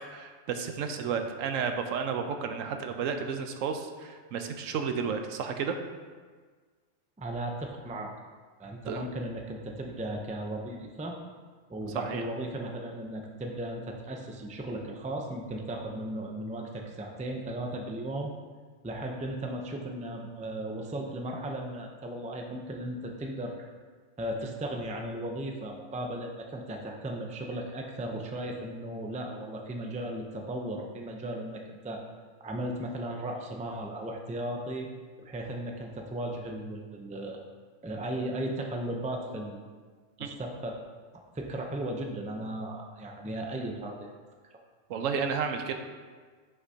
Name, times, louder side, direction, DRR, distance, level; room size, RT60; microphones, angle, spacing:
voice 1, 0.1-5.8 8.9-9.0 11.9-12.2 40.2-40.4 44.9-45.7, right 6 dB, 85° right, 6 dB, 1.0 m, -32 dB
voice 2, 7.2-8.1 8.6-11.2 11.7-18.3 18.8-23.7 24.2-32.0 32.4-34.9 35.2-37.4 37.8-39.6 40.2-40.8 41.3-44.1, right 1 dB, 10° right, 1 dB, 0.3 m, -36 dB
9.6 x 5.8 x 2.8 m, 1.5 s
omnidirectional pair, 1.3 m